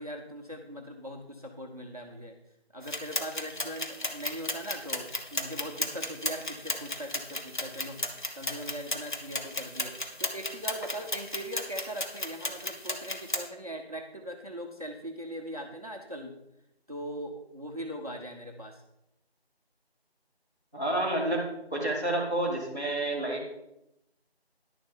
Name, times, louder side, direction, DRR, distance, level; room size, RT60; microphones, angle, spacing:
voice 1, 0.0-2.4 2.7-16.4 16.9-18.8, equal, 35° right, 2 dB, 0.7 m, -40 dB
sound 1, 2.8-13.5, left 1 dB, 50° left, 1.1 m, -35 dB
voice 2, 20.7-23.6, right 1 dB, 15° left, -9 dB, 2.1 m, -29 dB
10.5 x 6.9 x 5.2 m, 0.84 s
figure-of-eight pair, 170°, 32 cm